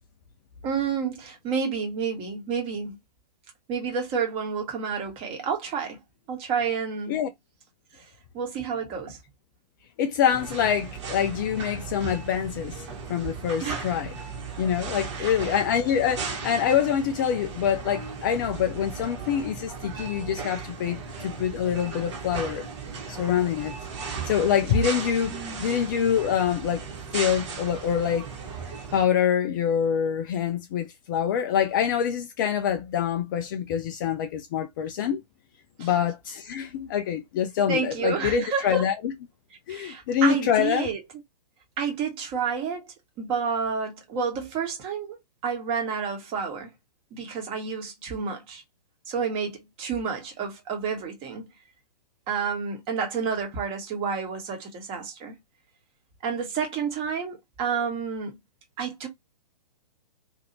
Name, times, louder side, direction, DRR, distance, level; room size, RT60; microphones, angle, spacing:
voice 1, 0.6-3.0 3.7-6.0 6.3-7.2 7.9-8.1 8.3-9.2 13.6-13.9 15.1-15.3 25.3-25.7 35.8-35.9 37.7-38.9 39.7-41.0 41.8-46.7 47.1-48.6 49.1-51.5 52.3-55.4 56.2-58.4 58.8-59.1, right 6 dB, 25° right, 1.2 m, -30 dB
voice 2, 10.0-12.7 13.1-14.1 14.6-22.7 23.1-23.7 24.2-25.3 25.6-26.8 27.1-28.3 28.9-35.2 35.8-39.0 39.7-40.9, left 8 dB, 30° left, 0.4 m, -25 dB
sound 1, 10.3-29.1, right 5 dB, 45° right, 1.2 m, -36 dB
2.8 x 2.6 x 2.7 m
figure-of-eight pair, 115°, 21 cm